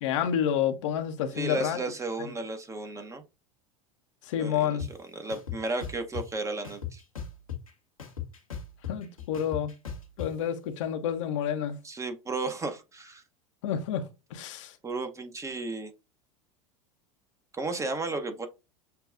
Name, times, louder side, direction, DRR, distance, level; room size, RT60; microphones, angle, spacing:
voice 1, 0.0-1.8 4.3-4.8 8.9-9.7 10.2-11.8 13.6-14.1 14.3-14.7, left 9 dB, 65° left, 0.8 m, -29 dB
voice 2, 1.3-3.2 4.4-7.0 11.8-13.2 14.8-15.9 17.6-18.5, right 3 dB, 15° right, 0.8 m, -34 dB
sound 1, 4.8-4.9 5.3-6.2 6.6-7.7 8.0-10.3, left 9 dB, 90° left, 1.1 m, -37 dB
6.8 x 2.3 x 2.4 m
hypercardioid pair, 85°, 17 cm